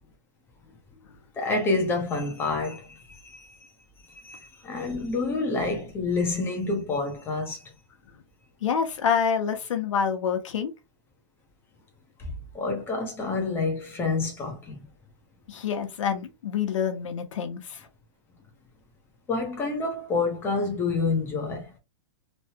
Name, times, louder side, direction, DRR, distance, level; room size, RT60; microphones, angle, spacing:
voice 1, 1.3-3.7 4.1-7.7 12.2-14.9 19.3-21.7, left 3 dB, 15° left, 0.8 m, -28 dB
voice 2, 8.6-10.7 15.5-17.9, left 7 dB, 80° left, 0.9 m, -27 dB
3.1 x 2.2 x 2.8 m
hypercardioid pair, 160°, 16 cm